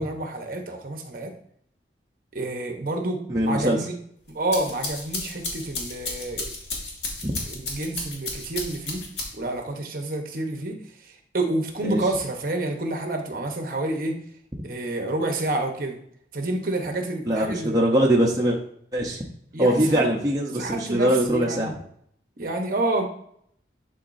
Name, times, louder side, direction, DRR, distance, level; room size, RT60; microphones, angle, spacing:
voice 1, 0.0-1.3 2.3-3.9 4.3-6.5 7.5-9.0 9.3-14.2 14.6-16.0 16.3-17.8 19.5-20.0 20.5-21.7 22.4-23.0, right 2 dB, 50° right, 3 dB, 1.0 m, -28 dB
voice 2, 3.3-3.8 7.2-7.4 11.8-12.0 17.3-18.6 18.9-19.2 19.6-21.7, right 1 dB, 20° right, -3 dB, 0.8 m, -22 dB
sound 1, 4.3-9.6, left 2 dB, 80° left, 1.7 m, -33 dB
10.5 x 4.0 x 2.7 m, 0.68 s
head